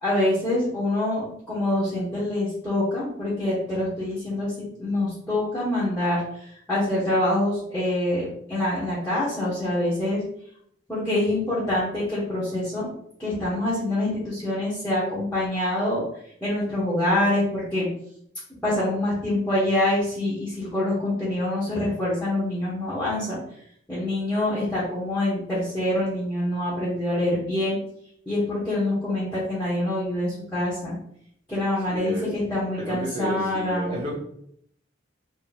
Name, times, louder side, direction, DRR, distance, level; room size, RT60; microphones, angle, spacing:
voice 1, 0.0-10.2 10.9-12.9 13.2-16.0 16.4-17.9 18.6-23.4 23.9-27.7 28.3-31.0 31.5-34.0, left 1 dB, 10° left, -11 dB, 1.3 m, -25 dB
voice 2, 31.9-32.3 32.7-34.1, equal, 30° right, -6 dB, 1.3 m, -31 dB
3.1 x 3.0 x 4.2 m, 0.68 s
head